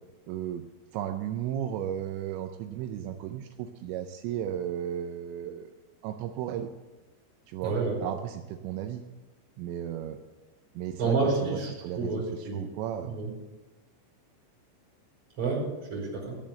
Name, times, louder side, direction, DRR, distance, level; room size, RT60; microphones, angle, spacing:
voice 1, 0.3-0.6 0.9-5.7 6.0-6.7 7.5-9.0 9.6-10.2 10.8-13.1, right 10 dB, 85° right, 6 dB, 2.6 m, -35 dB
voice 2, 7.6-8.0 11.0-12.7 13.0-13.3 15.4-16.4, right 4 dB, 25° right, -2 dB, 4.7 m, -29 dB
14.0 x 7.3 x 7.6 m, 1.1 s
omnidirectional pair, 5.9 m